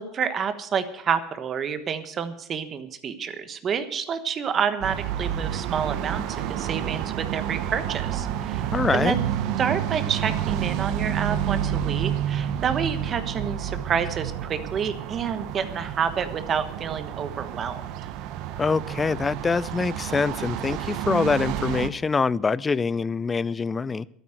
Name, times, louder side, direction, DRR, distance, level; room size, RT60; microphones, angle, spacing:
voice 1, 0.0-9.2 9.6-17.9, right 7 dB, 35° right, 1.2 m, -29 dB
sound 1, 4.8-21.9, right 10 dB, 65° right, 0.9 m, -29 dB
voice 2, 8.7-9.2 18.6-24.1, left 4 dB, 20° left, 0.4 m, -24 dB
12.5 x 9.1 x 7.7 m
supercardioid pair, 120°, 0 cm